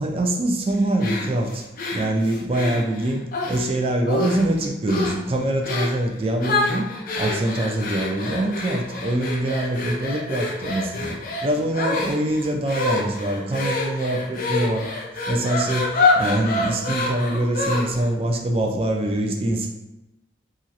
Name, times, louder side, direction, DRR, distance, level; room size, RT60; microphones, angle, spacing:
voice 1, 0.0-1.6 1.9-6.9 7.2-14.9 15.3-15.9 16.1-19.7, right 1 dB, 30° right, 2 dB, 0.3 m, -24 dB
sound 1, 1.0-3.7 4.1-4.5 4.9-5.2 5.6-6.0 6.4-18.1, left 3 dB, 50° left, 0.5 m, -27 dB
2.9 x 2.5 x 2.8 m, 0.93 s
head